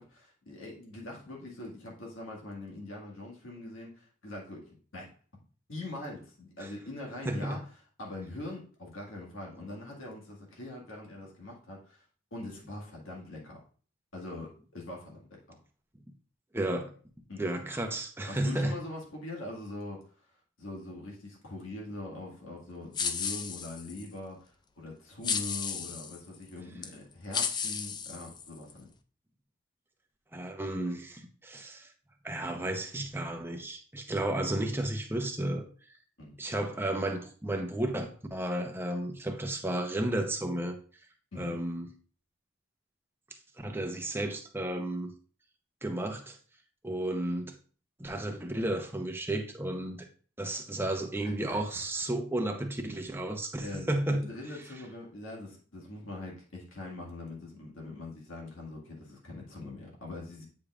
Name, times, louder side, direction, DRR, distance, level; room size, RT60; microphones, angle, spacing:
voice 1, 0.0-5.1 5.7-7.6 8.0-12.0 12.3-13.6 14.1-15.6 17.3-17.4 18.3-20.1 20.6-28.9 36.2-36.3 41.3-41.6 51.2-51.9 53.6-60.4, left 2 dB, 75° left, 1.9 m, -43 dB
voice 2, 7.2-7.6 16.5-16.9 17.4-18.8 30.3-31.9 32.2-35.7 36.4-40.8 41.4-41.9 43.6-45.1 45.8-46.4 46.8-47.6 48.0-50.0 50.4-54.3, right 1 dB, 10° right, 0.7 m, -33 dB
sound 1, 22.9-24.1 25.2-26.2 26.8-26.9 27.3-28.7, left 6 dB, 20° left, 0.3 m, -33 dB
8.5 x 5.1 x 2.4 m
head